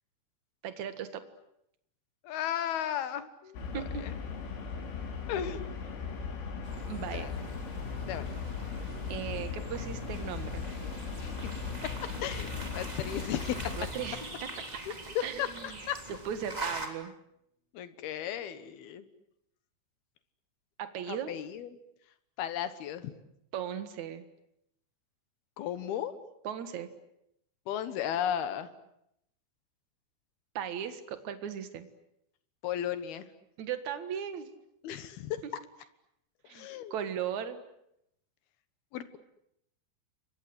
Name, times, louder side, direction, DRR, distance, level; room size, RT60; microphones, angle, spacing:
voice 1, 0.6-1.2 3.7-4.0 6.9-7.3 9.1-10.7 13.8-14.2 15.2-15.3 15.6-15.8 16.2-17.1 20.8-21.3 23.5-24.3 26.4-26.9 30.5-31.9 33.6-34.5 36.5-37.6, right 9 dB, 55° right, 10 dB, 2.2 m, -37 dB
voice 2, 2.2-4.2 5.3-5.6 7.1-7.3 8.1-8.3 11.2-11.5 12.2-13.8 14.9-15.5 15.9-16.0 17.7-19.0 21.1-21.7 22.4-23.1 25.6-26.1 27.7-28.7 32.6-33.3 34.8-35.4 36.4-36.9 38.9-39.2, left 10 dB, 65° left, 12 dB, 2.8 m, -35 dB
sound 1, 3.5-13.9, left 5 dB, 85° left, 6.2 m, -38 dB
sound 2, 6.6-16.9, right 2 dB, 10° right, 2.3 m, -44 dB
sound 3, 6.8-15.5, left 3 dB, 45° left, 2.9 m, -47 dB
29.5 x 24.0 x 8.0 m, 0.79 s
omnidirectional pair, 5.4 m